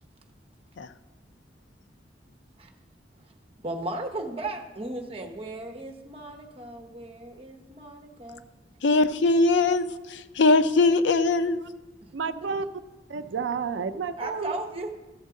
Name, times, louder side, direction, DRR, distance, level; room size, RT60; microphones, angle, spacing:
voice 1, 3.6-8.5 12.0-12.3 14.2-15.0, right 2 dB, 30° right, 1.0 m, -36 dB
voice 2, 8.8-11.6, left 3 dB, 80° left, 0.5 m, -21 dB
voice 3, 12.1-12.7 13.1-14.6, right 5 dB, 85° right, 0.5 m, -30 dB
13.5 x 7.3 x 3.7 m
head